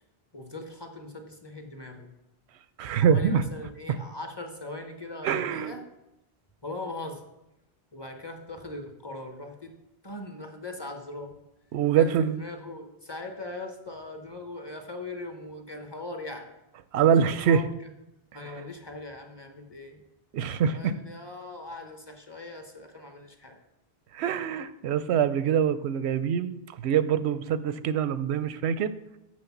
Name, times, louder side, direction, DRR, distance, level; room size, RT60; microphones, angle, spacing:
voice 1, 0.3-2.1 2.9-5.8 6.6-7.2 7.9-9.8 10.0-11.4 11.9-16.5 17.5-17.6 18.3-20.0 20.7-23.6, left 2 dB, 25° left, 4 dB, 1.0 m, -40 dB
voice 2, 2.8-3.4 5.2-5.7 11.7-12.4 16.9-17.6 18.3-18.6 20.3-20.9 24.1-28.9, right 8 dB, 90° right, 13 dB, 0.8 m, -25 dB
6.3 x 6.3 x 7.1 m, 0.91 s
omnidirectional pair, 1.1 m